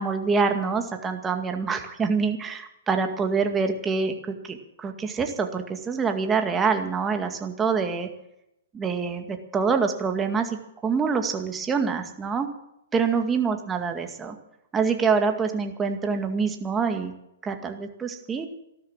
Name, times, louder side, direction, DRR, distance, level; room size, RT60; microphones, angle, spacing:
voice 1, 0.0-8.1 8.7-12.5 12.9-14.4 14.7-17.1 17.4-18.5, right 5 dB, 15° right, 5 dB, 2.1 m, -26 dB
14.0 x 12.5 x 7.5 m, 0.82 s
hypercardioid pair, 125°, 0 cm